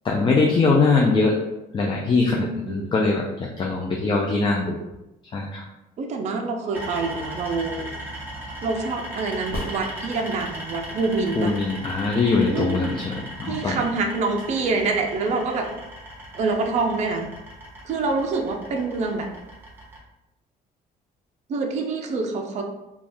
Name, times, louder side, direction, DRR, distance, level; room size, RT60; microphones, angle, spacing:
voice 1, 0.0-1.4 1.7-4.8 5.3-5.6 11.4-13.8, left 3 dB, 30° left, -1 dB, 0.4 m, -22 dB
voice 2, 2.3-2.9 6.0-7.9 8.6-11.5 12.5-12.9 13.5-15.7 16.3-17.3 17.8-19.3 21.5-22.6, right 3 dB, 45° right, 3 dB, 0.4 m, -26 dB
sound 1, 6.7-20.0, right 1 dB, 10° right, 1.0 m, -38 dB
sound 2, 9.5-10.6 14.5-14.6, left 1 dB, 55° left, 1.0 m, -35 dB
2.5 x 2.3 x 3.4 m, 0.94 s
cardioid pair, 110°, 17 cm